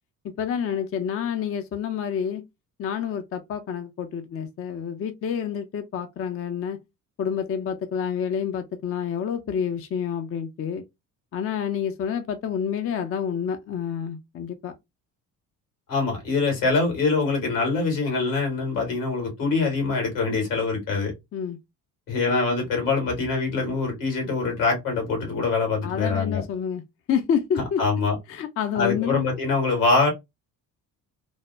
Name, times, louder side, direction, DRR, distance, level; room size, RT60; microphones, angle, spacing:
voice 1, 0.4-2.4 2.8-6.8 7.2-10.8 11.3-14.7 21.3-21.6 25.8-26.8 27.1-27.8 28.3-29.2, left 8 dB, 30° left, 0.5 m, -28 dB
voice 2, 15.9-21.1 22.1-26.4 27.8-28.1 28.7-30.1, left 3 dB, 75° left, 1.8 m, -24 dB
3.3 x 2.1 x 2.4 m
hypercardioid pair, 50°, 48 cm